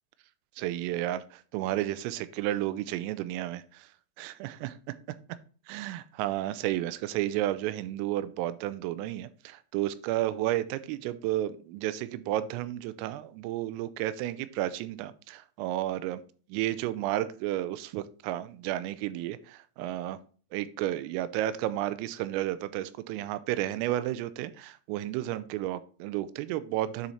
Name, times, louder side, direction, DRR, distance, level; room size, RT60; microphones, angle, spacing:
voice 1, 0.6-3.9 4.2-4.8 5.7-16.2 16.5-20.2 20.5-27.1, right 14 dB, 85° right, 14 dB, 3.2 m, -32 dB
9.7 x 4.4 x 4.2 m, 0.40 s
omnidirectional pair, 5.9 m